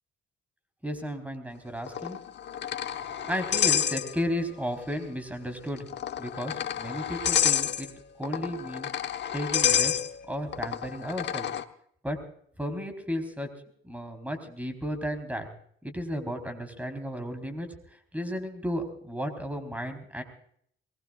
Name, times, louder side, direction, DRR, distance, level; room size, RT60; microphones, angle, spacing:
voice 1, 0.8-2.2 2.9-5.9 6.2-7.9 8.2-8.9 9.3-10.0 10.3-11.5 12.0-12.2 12.6-13.5 13.8-15.5 15.8-17.7 18.1-20.2, equal, 5° right, 7 dB, 4.2 m, -34 dB
sound 1, 1.9-4.5 4.8-4.9 5.8-11.6, left 9 dB, 60° left, 1.1 m, -29 dB
23.0 x 20.5 x 2.5 m, 0.65 s
cardioid pair, 90°, 20 cm